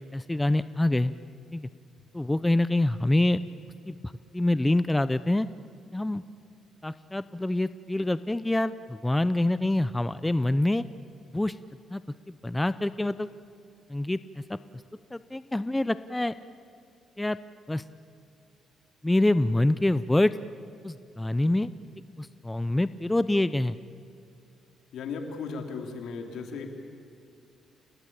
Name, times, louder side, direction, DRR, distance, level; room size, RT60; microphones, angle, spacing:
voice 1, 0.1-1.1 1.5-1.7 2.1-3.4 3.9-4.0 4.3-5.5 5.9-6.2 6.8-10.8 11.3-11.6 11.9-12.0 12.3-13.3 13.9-14.6 15.1-16.3 17.2-17.4 17.7-17.8 19.0-20.3 20.8-21.7 22.2-23.8, left 1 dB, 10° left, 14 dB, 0.6 m, -26 dB
voice 2, 24.9-26.7, left 5 dB, 75° left, 3 dB, 3.4 m, -36 dB
29.0 x 19.5 x 8.8 m, 2.5 s
cardioid pair, 90°, 0 cm